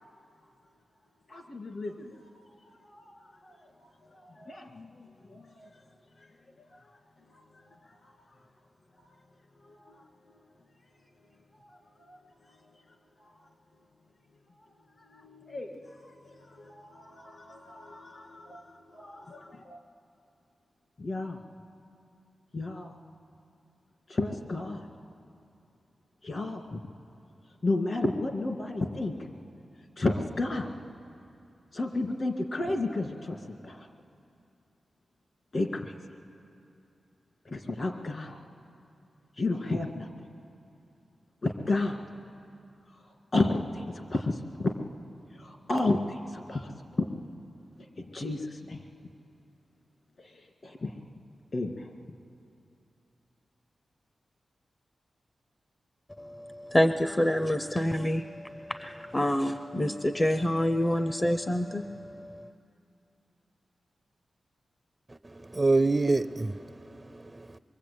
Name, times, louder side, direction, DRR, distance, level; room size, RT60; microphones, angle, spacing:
voice 1, 1.3-8.5 9.0-9.1 9.6-10.4 11.5-12.8 13.2-13.5 14.5-19.8 21.0-21.4 22.5-22.9 24.1-24.9 26.2-26.8 27.6-29.3 30.0-30.7 31.7-33.9 35.5-36.0 37.4-38.4 39.4-40.3 41.4-42.1 42.9-44.7 45.3-47.1 47.8-48.8 50.2-51.0 51.5-51.9, left 2 dB, 50° left, 4 dB, 2.3 m, -34 dB
voice 2, 56.2-62.0, left 1 dB, 20° left, 9 dB, 0.6 m, -27 dB
voice 3, 65.1-67.6, right 3 dB, 25° right, 13 dB, 0.5 m, -27 dB
23.5 x 23.0 x 8.6 m, 2.7 s
wide cardioid pair, 80°, 0 cm